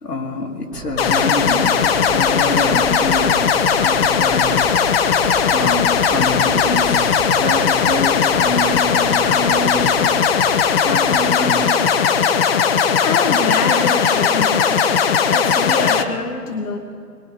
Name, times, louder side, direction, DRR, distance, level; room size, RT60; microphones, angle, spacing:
voice 1, 0.0-3.5 3.8-4.6 5.4-10.3 10.8-11.7 12.1-12.2, left 2 dB, 85° left, 1 dB, 2.3 m, -26 dB
sound 1, 0.7-12.3, right 3 dB, 50° right, 2.0 m, -36 dB
sound 2, 1.0-16.0, left 6 dB, 40° left, 0.8 m, -17 dB
voice 2, 13.0-14.8 15.3-16.8, left 4 dB, 70° left, 3 dB, 1.4 m, -25 dB
22.5 x 20.5 x 2.8 m, 2.4 s
figure-of-eight pair, 125°, 46 cm